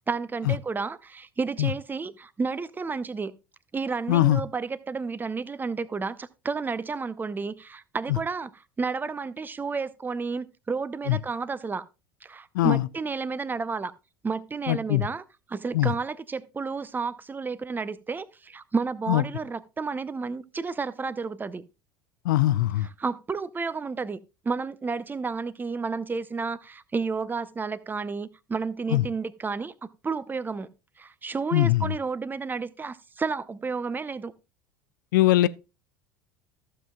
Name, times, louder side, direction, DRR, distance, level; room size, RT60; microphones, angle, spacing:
voice 1, 0.1-3.3 3.7-11.9 12.2-13.9 14.2-15.2 15.5-21.6 22.8-30.7 31.0-34.3, right 4 dB, 15° right, 0.7 m, -31 dB
voice 2, 4.1-4.4 11.1-11.2 12.5-12.9 14.7-15.1 15.7-15.9 19.1-19.2 22.2-22.9 28.9-29.0 31.5-31.9 35.1-35.5, left 15 dB, 65° left, 0.5 m, -21 dB
14.5 x 7.5 x 2.3 m
figure-of-eight pair, 70°, 11 cm